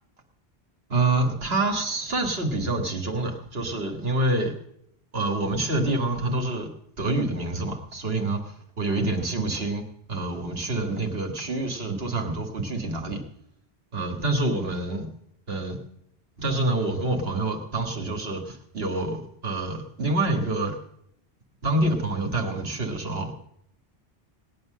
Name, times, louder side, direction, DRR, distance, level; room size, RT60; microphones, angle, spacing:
voice 1, 0.9-4.5 5.1-6.7 7.0-13.2 13.9-15.1 15.5-15.8 16.4-20.8 21.6-23.3, right 2 dB, 70° right, 4 dB, 2.0 m, -27 dB
18.5 x 9.6 x 6.5 m, 0.74 s
omnidirectional pair, 1.1 m